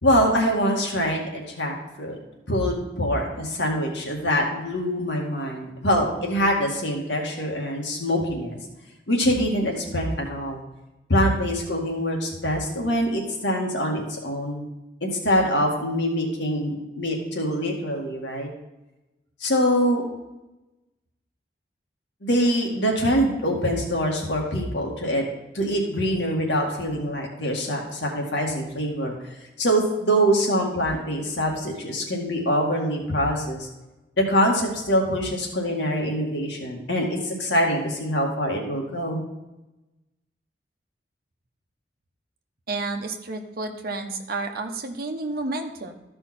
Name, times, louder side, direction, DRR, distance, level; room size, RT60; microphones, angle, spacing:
voice 1, 0.0-2.2 2.5-8.6 9.1-10.6 11.1-14.6 15.0-18.5 19.4-20.0 22.2-25.2 25.5-29.1 29.6-33.7 34.2-39.2, equal, 85° left, 0 dB, 2.1 m, -24 dB
voice 2, 42.7-45.9, right 3 dB, 60° right, 4 dB, 1.1 m, -30 dB
13.5 x 5.6 x 4.3 m, 1.0 s
head